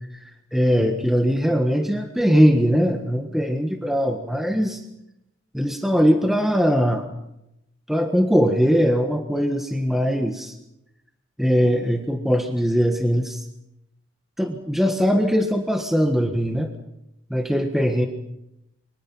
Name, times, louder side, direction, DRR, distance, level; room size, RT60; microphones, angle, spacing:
voice 1, 0.5-4.8 5.5-7.0 7.9-10.5 11.4-13.4 14.4-16.7 17.3-18.1, equal, ahead, 4 dB, 1.5 m, -20 dB
29.5 x 23.5 x 5.6 m, 0.85 s
head